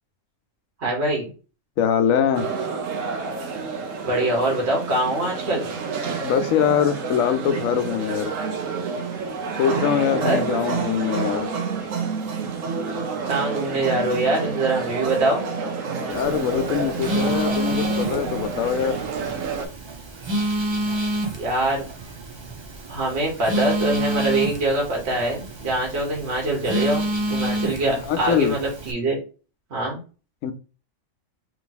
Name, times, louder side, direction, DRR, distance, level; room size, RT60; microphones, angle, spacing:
voice 1, 0.8-1.3 4.0-5.7 10.2-10.5 13.3-15.4 21.4-21.9 22.9-27.0 27.3-29.2 29.7-30.0, right 2 dB, 55° right, 1.7 m, -23 dB
voice 2, 1.8-2.5 6.2-8.3 9.6-11.5 16.0-19.0 27.6-27.7 28.0-28.6 30.4-30.5, left 8 dB, 90° left, 1.0 m, -23 dB
sound 1, 2.3-19.6, right 5 dB, 75° right, 1.1 m, -29 dB
Telephone, 16.1-28.9, right 1 dB, 35° right, 0.4 m, -28 dB
3.3 x 3.0 x 4.0 m
omnidirectional pair, 1.4 m